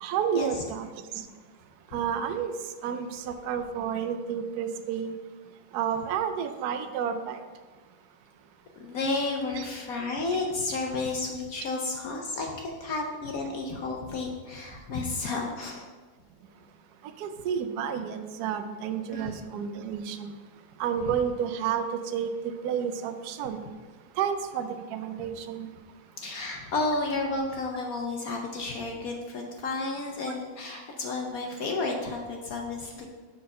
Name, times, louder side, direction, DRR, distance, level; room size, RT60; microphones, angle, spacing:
voice 1, 0.0-0.9 1.1-1.3 1.9-2.5 2.8-5.1 5.7-7.4 9.5-9.7 17.2-20.3 20.8-21.8 22.1-23.6 24.2-25.7, right 8 dB, 70° right, 8 dB, 0.9 m, -30 dB
voice 2, 8.8-15.9 19.1-19.3 26.2-33.1, left 3 dB, 65° left, 1 dB, 0.9 m, -32 dB
6.4 x 4.7 x 5.4 m, 1.3 s
omnidirectional pair, 2.1 m